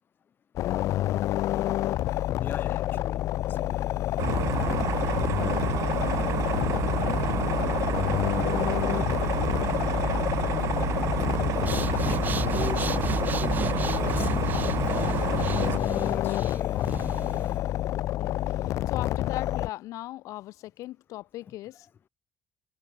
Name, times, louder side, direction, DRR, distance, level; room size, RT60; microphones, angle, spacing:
sound 1, 0.6-19.7, left 14 dB, 70° left, 0.5 m, -28 dB
voice 1, 1.1-1.4 4.4-4.5 5.0-9.8 18.1-21.9, left 16 dB, 90° left, 3.4 m, -41 dB
voice 2, 2.4-3.8 4.8-4.9 9.8-9.9 10.4-10.6 11.4-17.5, left 7 dB, 40° left, 1.8 m, -39 dB
sound 2, 4.2-15.8, right 13 dB, 70° right, 2.3 m, -30 dB
Breathing, 11.5-17.6, right 6 dB, 35° right, 2.3 m, -37 dB
cardioid pair, 140°, 5 cm